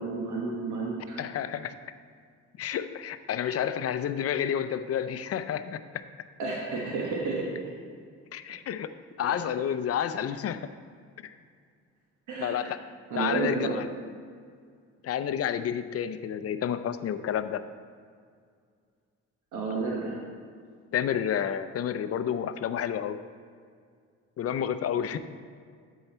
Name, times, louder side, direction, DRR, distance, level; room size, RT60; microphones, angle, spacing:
voice 1, 0.0-1.2 3.4-3.6 6.4-7.7 12.3-12.7 13.1-13.8 19.5-20.2 24.9-25.2, right 3 dB, 80° right, -3 dB, 1.3 m, -32 dB
voice 2, 1.2-1.7 2.6-5.8 8.3-10.7 11.2-11.3 12.4-12.8 13.2-13.9 15.0-17.6 20.9-23.2 24.4-25.2, left 9 dB, 50° left, 11 dB, 0.5 m, -30 dB
12.5 x 4.7 x 4.4 m, 2.1 s
cardioid pair, 90°, 30 cm